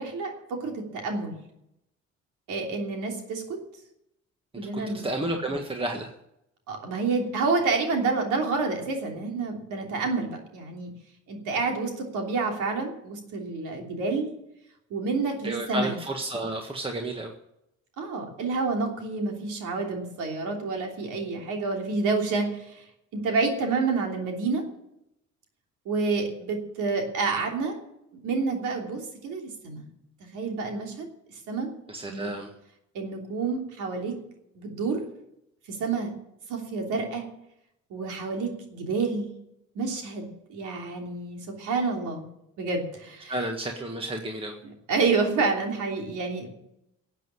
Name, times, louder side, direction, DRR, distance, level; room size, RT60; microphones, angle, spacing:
voice 1, 0.0-1.4 2.5-3.4 4.6-5.1 6.7-10.9 11.3-14.3 14.9-15.9 18.0-22.8 23.1-24.6 25.8-27.8 28.2-29.9 30.3-31.1 31.5-31.7 32.1-32.3 32.9-34.1 34.5-35.0 35.7-36.1 36.5-37.2 37.9-39.3 39.7-42.3 42.6-43.4 44.6-46.5, right 4 dB, 90° right, 2 dB, 3.2 m, -29 dB
voice 2, 4.7-6.1 15.4-17.3 31.9-32.5 43.3-44.5, right 1 dB, 20° right, 2 dB, 1.6 m, -31 dB
13.0 x 8.2 x 9.8 m, 0.81 s
cardioid pair, 90°, 30 cm